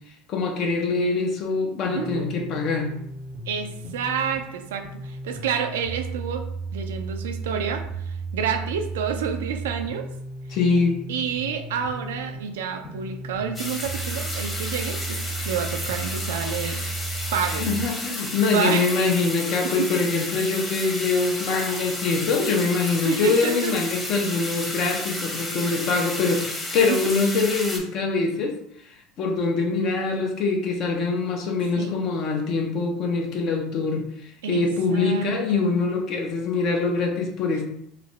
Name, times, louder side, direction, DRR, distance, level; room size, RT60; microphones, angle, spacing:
voice 1, 0.3-2.9 10.5-11.0 17.5-28.5 28.8-37.6, left 4 dB, 55° left, 1 dB, 0.8 m, -24 dB
sound 1, 1.8-17.9, right 3 dB, 80° left, 1.2 m, -34 dB
voice 2, 1.9-2.3 3.5-10.1 11.1-16.8 17.3-17.7 18.5-18.9 19.6-19.9 23.0-23.8 26.9-27.2 31.8-31.9 34.4-35.7, right 6 dB, 85° right, 6 dB, 0.4 m, -29 dB
sound 2, 13.5-27.8, left 1 dB, 15° left, 1.0 m, -32 dB
3.6 x 2.0 x 3.4 m, 0.71 s
hypercardioid pair, 85°, 0 cm